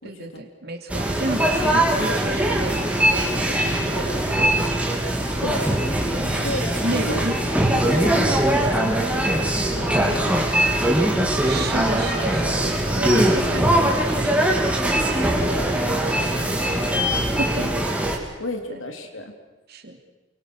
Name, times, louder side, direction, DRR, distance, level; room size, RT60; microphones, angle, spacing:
voice 1, 0.0-4.7 6.1-7.3 8.9-9.2 11.4-15.6 17.4-17.6 18.7-18.8 19.7-20.0, right 2 dB, 50° right, 5 dB, 3.1 m, -32 dB
sound 1, 0.9-18.2, right 1 dB, 5° right, 3.1 m, -21 dB
voice 2, 5.4-5.8 6.4-9.3 9.7-10.4 11.1-11.6 17.6-17.7 18.4-19.3, left 1 dB, 75° left, 4 dB, 3.7 m, -33 dB
28.5 x 24.0 x 6.6 m, 1.1 s
head